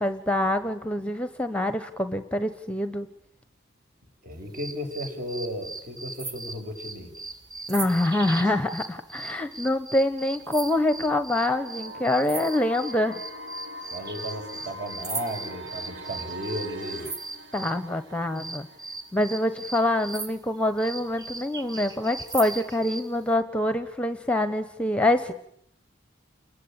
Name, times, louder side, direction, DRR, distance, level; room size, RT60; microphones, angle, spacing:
voice 1, 0.0-3.1 7.7-13.2 17.5-18.7 19.1-25.4, left 1 dB, 5° left, 10 dB, 1.1 m, -25 dB
voice 2, 4.2-7.1 13.9-17.1, equal, 45° right, 5 dB, 6.3 m, -34 dB
sound 1, 4.5-17.8 18.3-23.1, right 3 dB, 20° right, 1.9 m, -38 dB
sound 2, 11.5-19.5, right 1 dB, 70° right, 2.6 m, -42 dB
29.5 x 22.0 x 9.0 m, 0.71 s
head